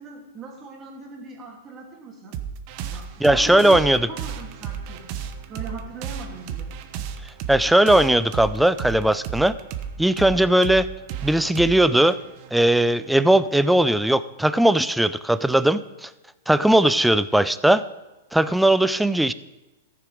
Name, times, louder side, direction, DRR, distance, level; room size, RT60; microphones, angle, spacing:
voice 1, 0.0-2.4 2.9-5.0 5.5-6.7, right 3 dB, 25° right, -1 dB, 2.8 m, -39 dB
sound 1, 2.3-13.4, right 8 dB, 45° right, 0.9 m, -34 dB
voice 2, 3.2-4.0 7.5-9.5 10.0-10.9 11.2-12.2 12.5-16.1 16.5-17.8 18.3-19.3, right 1 dB, 5° right, 15 dB, 0.4 m, -18 dB
14.0 x 6.8 x 5.0 m, 1.0 s
hypercardioid pair, 140°, 0 cm